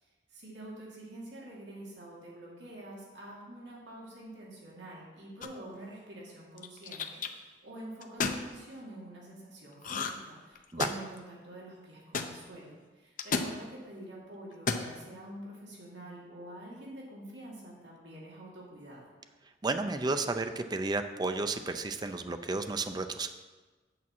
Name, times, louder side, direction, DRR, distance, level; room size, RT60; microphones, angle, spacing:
voice 1, 0.0-19.1, right 1 dB, 80° right, -4 dB, 2.3 m, -47 dB
sound 1, 5.4-5.8 6.6-7.3 8.0-8.4 9.8-10.3 10.6-11.2 12.1-12.3 13.2-13.5 14.5-14.9, left 4 dB, 50° left, 0.6 m, -32 dB
voice 2, 19.6-23.3, right 3 dB, 25° right, 8 dB, 0.5 m, -32 dB
8.4 x 4.6 x 7.2 m, 1.3 s
head